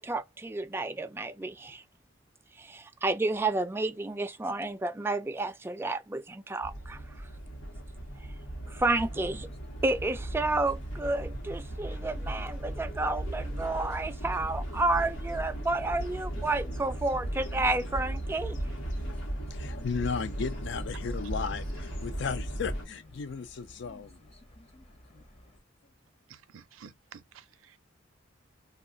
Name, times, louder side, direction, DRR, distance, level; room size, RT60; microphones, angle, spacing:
voice 1, 0.0-1.8 2.6-7.3 8.7-9.5 9.8-18.6, right 2 dB, 10° right, 0.3 m, -31 dB
sound 1, 6.6-22.9, right 1 dB, 90° left, 1.1 m, -36 dB
sound 2, 8.6-25.6, left 1 dB, 30° left, 0.7 m, -55 dB
voice 2, 19.5-24.2, left 5 dB, 60° left, 0.4 m, -35 dB
voice 3, 26.3-27.8, right 7 dB, 85° right, 0.5 m, -51 dB
2.4 x 2.3 x 3.7 m
head